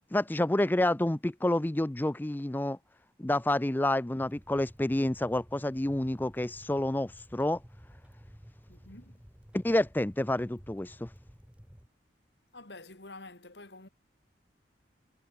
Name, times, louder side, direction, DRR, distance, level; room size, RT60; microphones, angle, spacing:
voice 1, 0.1-2.8 3.2-7.6 9.5-11.1, left 1 dB, 10° left, 0.4 m, -29 dB
sound 1, 4.2-11.9, equal, 5° right, 1.9 m, -54 dB
voice 2, 8.7-9.2 12.5-13.9, left 2 dB, 70° left, 3.4 m, -48 dB
head